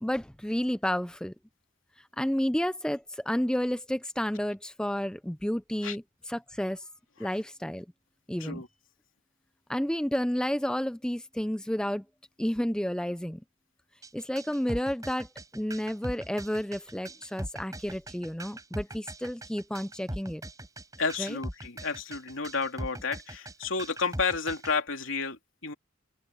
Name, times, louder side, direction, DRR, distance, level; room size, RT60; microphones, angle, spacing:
voice 1, 0.0-1.3 2.2-6.0 6.3-6.8 7.2-7.9 8.3-8.6 9.7-12.0 12.4-13.4 14.1-15.3 15.5-20.4 21.2-21.4, equal, 5° left, 0.5 m, -31 dB
sound 1, 14.0-24.7, right 1 dB, 15° right, 5.9 m, -40 dB
voice 2, 21.0-25.7, left 4 dB, 85° left, 3.0 m, -31 dB
open air
head